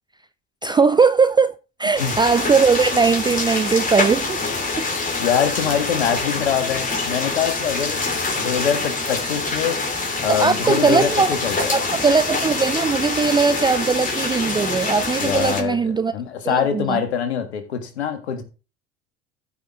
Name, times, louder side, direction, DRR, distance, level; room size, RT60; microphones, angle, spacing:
voice 1, 0.6-4.4 10.3-11.3 11.7-16.1 16.5-17.0, right 5 dB, 15° right, 0.4 m, -19 dB
sound 1, 2.0-15.6, left 3 dB, 25° left, 3.1 m, -25 dB
voice 2, 5.2-9.9 10.2-11.8 15.2-18.4, left 8 dB, 85° left, 1.9 m, -24 dB
14.0 x 5.9 x 3.7 m
hypercardioid pair, 70°, 32 cm